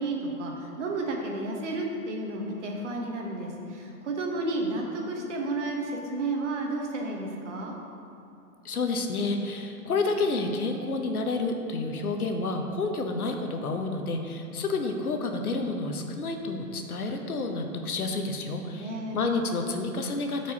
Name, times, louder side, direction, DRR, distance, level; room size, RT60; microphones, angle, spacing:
voice 1, 0.0-7.7 18.8-19.2, right 2 dB, 50° right, 0 dB, 1.3 m, -32 dB
voice 2, 8.6-20.5, left 3 dB, 70° left, 4 dB, 1.0 m, -29 dB
12.0 x 4.7 x 2.9 m, 2.7 s
figure-of-eight pair, 125°, 46 cm